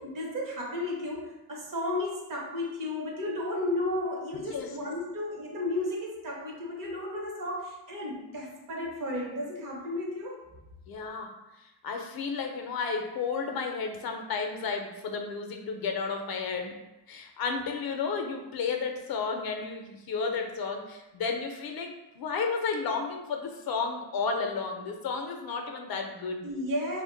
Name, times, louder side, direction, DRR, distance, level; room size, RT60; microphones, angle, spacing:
voice 1, 0.0-10.4 26.4-27.0, left 1 dB, 50° right, -1 dB, 0.8 m, -33 dB
voice 2, 4.3-4.7 10.9-11.3 11.8-16.7 17.1-26.4, left 5 dB, 60° left, 3 dB, 0.5 m, -32 dB
2.5 x 2.1 x 3.7 m, 0.97 s
cardioid pair, 125°, 41 cm